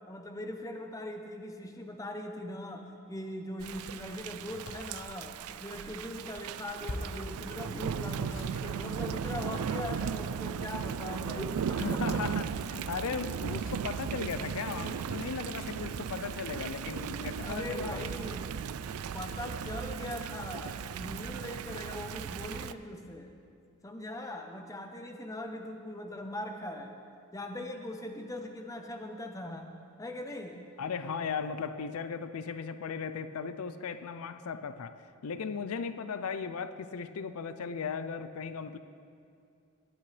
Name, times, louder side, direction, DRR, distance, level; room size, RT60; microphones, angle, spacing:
voice 1, 0.1-12.2 14.8-15.0 17.1-18.5 19.1-23.4 23.8-26.9 27.3-29.7 30.0-30.7, left 1 dB, 15° left, 4 dB, 0.7 m, -41 dB
Thunder / Rain, 3.6-22.7, right 7 dB, 85° right, 0.4 m, -36 dB
sound 1, 4.7-5.0 6.8-7.3 8.3-9.5 11.1-11.7 13.6-13.8 15.5-15.9 17.9-18.3 19.3-19.5, left 1 dB, 60° left, 0.8 m, -44 dB
voice 2, 11.8-18.1 30.8-38.8, left 5 dB, 85° left, 12 dB, 0.5 m, -37 dB
19.5 x 8.7 x 3.3 m, 2.5 s
head